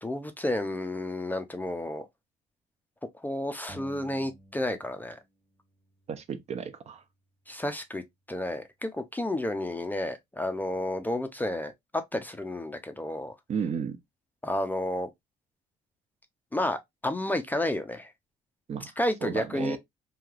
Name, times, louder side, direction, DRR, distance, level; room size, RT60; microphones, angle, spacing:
voice 1, 0.0-2.0 3.2-5.2 7.5-13.3 14.4-15.1 16.5-18.1 19.0-19.8, left 1 dB, 10° left, 0.4 m, -31 dB
sound 1, 3.7-5.2 5.4-7.2, right 1 dB, 15° right, 1.0 m, -54 dB
voice 2, 6.1-7.0 13.5-14.0 18.7-18.9 19.2-19.8, right 7 dB, 40° right, 0.5 m, -33 dB
3.2 x 2.8 x 2.4 m
cardioid pair, 110°, 17 cm